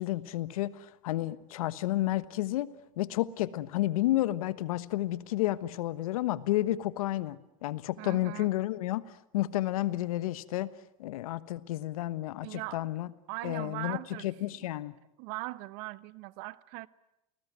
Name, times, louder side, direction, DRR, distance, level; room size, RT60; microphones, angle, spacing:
voice 1, 0.0-2.7 3.0-9.0 9.3-10.7 11.0-13.1 13.4-14.9, left 15 dB, 80° left, 1.3 m, -31 dB
voice 2, 8.0-8.5 12.4-12.8 13.3-14.3 14.6-14.7 15.2-16.9, right 22 dB, 65° right, 1.1 m, -40 dB
29.0 x 20.0 x 9.4 m
supercardioid pair, 105°, 18 cm